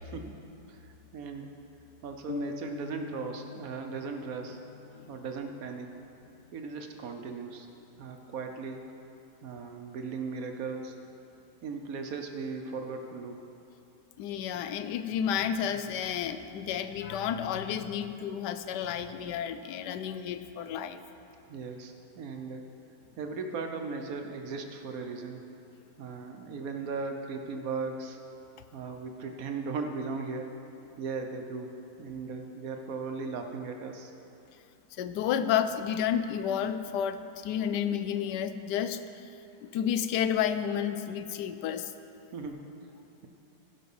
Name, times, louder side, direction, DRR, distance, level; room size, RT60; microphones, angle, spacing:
voice 1, 0.0-1.5 2.0-4.6 5.1-5.9 6.5-7.7 8.0-8.9 9.4-11.0 11.6-13.4 21.5-22.6 23.2-25.4 26.0-28.2 28.7-30.6 31.0-34.1 42.3-42.6, right 4 dB, 65° right, 5 dB, 1.1 m, -37 dB
sound 1, 2.3-6.0, left 5 dB, 70° left, 0.5 m, -44 dB
voice 2, 14.2-21.0 35.0-39.0 39.6-41.9, left 9 dB, 90° left, 10 dB, 1.2 m, -31 dB
15.5 x 5.4 x 5.4 m, 2.8 s
omnidirectional pair, 1.8 m